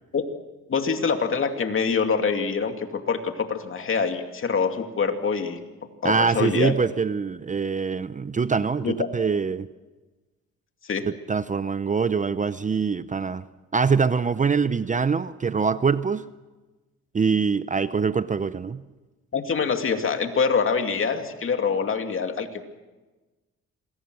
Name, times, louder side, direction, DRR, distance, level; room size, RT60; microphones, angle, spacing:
voice 1, 0.7-5.6 6.0-6.7 8.8-9.1 10.8-11.1 19.3-22.6, left 5 dB, 45° left, 2.6 m, -25 dB
voice 2, 6.0-9.7 11.3-13.4 13.7-16.3 17.1-18.8, right 5 dB, 25° right, 0.7 m, -24 dB
27.0 x 22.0 x 6.3 m
cardioid pair, 90°, 30 cm